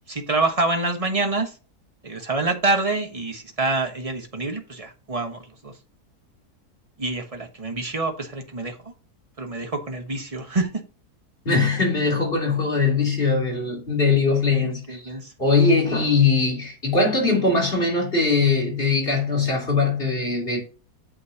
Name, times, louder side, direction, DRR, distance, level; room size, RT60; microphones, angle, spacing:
voice 1, 0.1-1.5 2.0-5.7 7.0-8.9 9.4-10.7 14.5-15.3, right 3 dB, 25° right, 1.1 m, -26 dB
voice 2, 11.4-20.6, left 4 dB, 35° left, 3.4 m, -21 dB
8.4 x 6.3 x 2.9 m
omnidirectional pair, 1.7 m